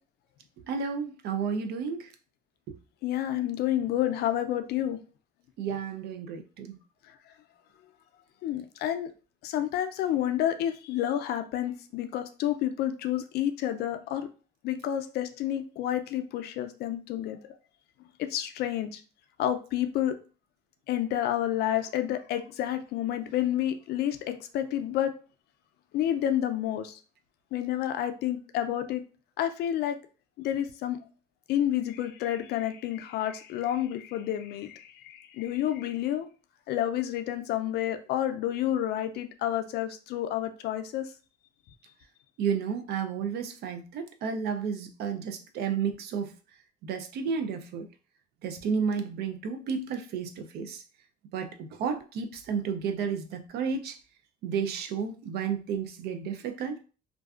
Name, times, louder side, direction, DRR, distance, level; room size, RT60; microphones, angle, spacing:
voice 1, 0.7-2.1 2.7-2.8 5.6-6.8 42.4-46.3 46.8-47.9 48.4-50.8 51.3-54.0 54.4-56.8, right 6 dB, 70° right, 0.5 m, -32 dB
voice 2, 3.0-5.0 8.4-9.1 9.4-14.3 14.6-17.4 18.2-19.0 19.4-20.2 20.9-25.1 25.9-27.0 27.5-29.0 29.4-30.0 30.4-31.0 31.5-36.3 36.7-41.1, left 11 dB, 70° left, 0.4 m, -29 dB
2.5 x 2.3 x 2.3 m
cardioid pair, 110°, 17 cm